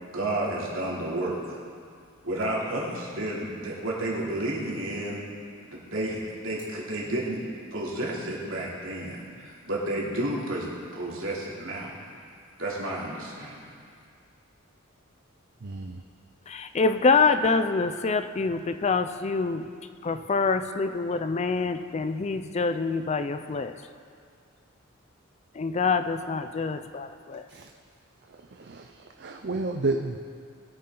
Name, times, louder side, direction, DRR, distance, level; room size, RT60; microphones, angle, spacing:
voice 1, 0.1-1.6 2.2-5.2 5.7-7.4 7.7-11.9 12.6-13.7, right 1 dB, 70° right, -5 dB, 3.0 m, -31 dB
voice 2, 15.6-16.0 27.5-27.7 28.6-28.8 29.2-30.2, right 3 dB, 55° right, 5 dB, 0.6 m, -30 dB
voice 3, 16.5-19.7 20.0-23.7 25.5-27.5, left 4 dB, 30° left, 10 dB, 0.4 m, -26 dB
20.5 x 8.5 x 3.9 m, 2.2 s
head